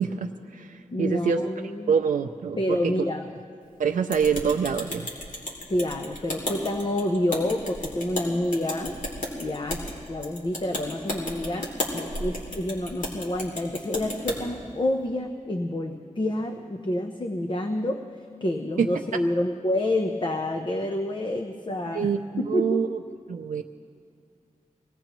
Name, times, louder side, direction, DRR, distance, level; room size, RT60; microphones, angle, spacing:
voice 1, 0.0-1.5 1.9-2.9 3.8-5.1 18.8-18.9 21.8-22.2 22.5-23.0 23.3-23.6, right 6 dB, 85° right, 4 dB, 0.5 m, -25 dB
voice 2, 0.9-1.9 2.6-3.3 5.7-8.9 9.4-22.8, left 1 dB, 40° left, 4 dB, 0.8 m, -28 dB
sound 1, 4.1-14.4, left 1 dB, 80° left, 3.0 m, -34 dB
24.0 x 18.0 x 3.0 m, 2.2 s
wide cardioid pair, 70°, 13 cm